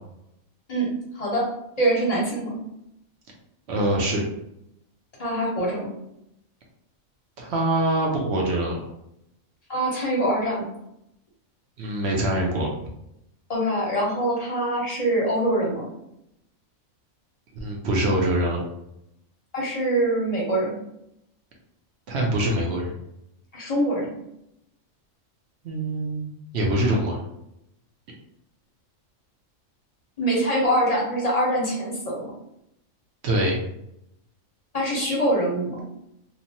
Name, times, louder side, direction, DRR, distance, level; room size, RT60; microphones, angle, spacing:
voice 1, 1.1-1.5 1.8-2.6 5.2-5.9 9.7-10.6 13.5-15.9 19.5-20.7 23.5-24.1 30.2-32.3 34.7-35.8, right 1 dB, 35° left, -4 dB, 0.7 m, -24 dB
voice 2, 3.7-4.2 7.4-8.9 11.8-12.7 17.5-18.6 22.1-22.9 25.6-26.3 26.5-27.2 33.2-33.6, right 1 dB, 60° right, 0 dB, 0.8 m, -24 dB
2.8 x 2.1 x 2.7 m, 0.80 s
omnidirectional pair, 1.4 m